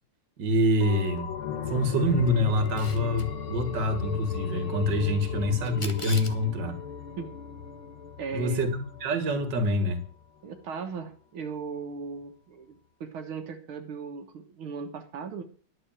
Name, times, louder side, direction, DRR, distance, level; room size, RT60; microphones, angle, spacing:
voice 1, 0.4-1.3 1.7-6.8 8.3-10.0, left 1 dB, 55° right, 9 dB, 2.4 m, -26 dB
sound 1, 0.8-10.2 10.5-10.6, left 7 dB, 75° left, 2.1 m, -36 dB
Camera, 2.6-3.3 5.6-6.4, left 3 dB, 20° left, 0.9 m, -40 dB
voice 2, 8.2-8.6 10.4-15.4, right 5 dB, 80° right, 4 dB, 2.2 m, -37 dB
11.5 x 7.3 x 7.3 m, 0.42 s
omnidirectional pair, 2.3 m